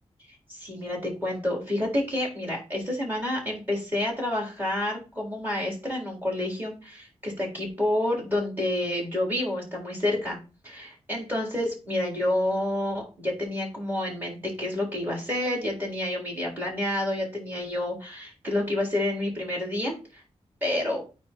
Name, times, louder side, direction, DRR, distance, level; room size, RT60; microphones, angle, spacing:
voice 1, 0.5-10.4 10.6-20.2 20.6-21.1, left 1 dB, 15° right, -2 dB, 3.8 m, -29 dB
9.1 x 3.1 x 4.5 m, 0.31 s
wide cardioid pair, 155°, 11 cm